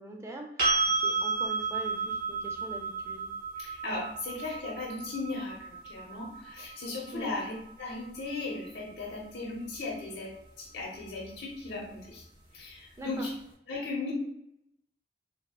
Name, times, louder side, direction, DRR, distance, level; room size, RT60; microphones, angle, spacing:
voice 1, 0.0-3.3 7.1-7.3 13.0-13.3, right 1 dB, 15° right, 2 dB, 0.4 m, -42 dB
sound 1, 0.6-8.4 11.2-11.3, right 4 dB, 60° right, 1.4 m, -33 dB
voice 2, 3.6-7.5 7.8-12.2 12.5-13.3 13.7-14.1, left 3 dB, 70° left, -3 dB, 0.7 m, -37 dB
3.4 x 2.0 x 2.3 m, 0.76 s
head